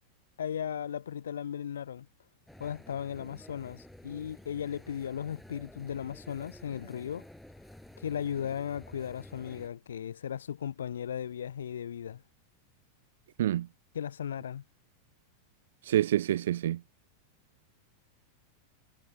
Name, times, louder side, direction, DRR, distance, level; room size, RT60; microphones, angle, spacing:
voice 1, 0.4-2.1 2.6-7.3 8.0-12.2 13.9-14.6, left 9 dB, 65° left, 0.3 m, -36 dB
sound 1, 2.5-9.7, left 1 dB, 5° left, 6.8 m, -51 dB
voice 2, 15.8-16.8, right 12 dB, 60° right, 0.5 m, -27 dB
figure-of-eight pair, 90°, 0 cm